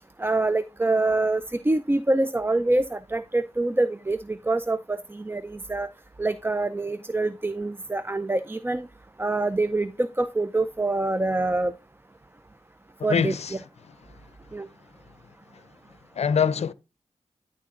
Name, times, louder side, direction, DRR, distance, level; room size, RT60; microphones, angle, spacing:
voice 1, 0.2-5.9 6.2-8.9 9.2-11.7 13.0-13.6 14.5-14.7, right 2 dB, 20° right, 0.5 m, -25 dB
voice 2, 13.1-13.5 16.2-16.7, left 7 dB, 60° left, 0.6 m, -23 dB
11.0 x 3.8 x 3.7 m
cardioid pair, 40°, 12 cm